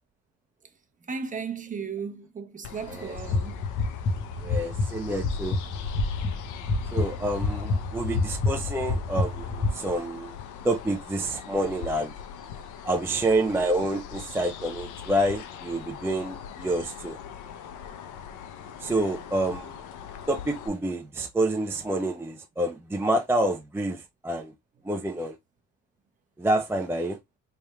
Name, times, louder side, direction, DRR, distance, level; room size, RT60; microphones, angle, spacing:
voice 1, 1.0-3.7 7.0-7.1 18.9-19.0, right 5 dB, 25° right, 0.9 m, -36 dB
sound 1, 2.6-20.7, left 8 dB, 80° left, 0.8 m, -40 dB
sound 2, 3.1-9.7, left 3 dB, 40° left, 1.2 m, -29 dB
voice 2, 4.4-5.6 6.9-10.4 10.6-12.1 12.9-17.2 18.8-19.8 20.3-24.5 24.8-25.3 26.4-27.2, right 1 dB, 10° right, 0.5 m, -28 dB
4.2 x 3.5 x 2.2 m
cardioid pair, 115°, 30 cm